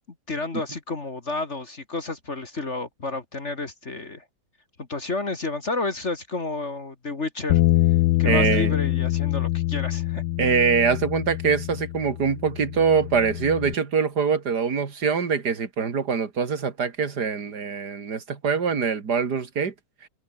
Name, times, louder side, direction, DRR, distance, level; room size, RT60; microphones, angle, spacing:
voice 1, 0.3-4.2 4.9-7.6 8.2-10.2, left 3 dB, 35° left, 2.2 m, -31 dB
Bass guitar, 7.5-13.7, left 16 dB, 80° left, 1.4 m, -24 dB
voice 2, 8.2-8.7 10.4-19.7, right 5 dB, 55° right, 2.9 m, -24 dB
omnidirectional pair, 2.1 m